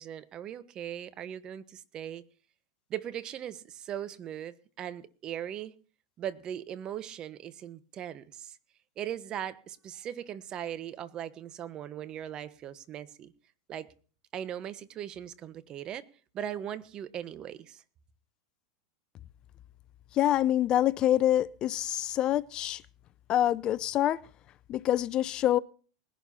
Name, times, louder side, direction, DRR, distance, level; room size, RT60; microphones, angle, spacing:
voice 1, 0.0-2.2 2.9-5.8 6.2-8.6 9.0-13.3 13.7-13.9 14.3-16.1 16.3-17.8, right 10 dB, 35° right, 1.1 m, -39 dB
voice 2, 20.1-22.8 23.3-24.2 24.7-25.6, left 12 dB, 35° left, 0.5 m, -26 dB
20.5 x 11.5 x 2.8 m
hypercardioid pair, 110°, 2 cm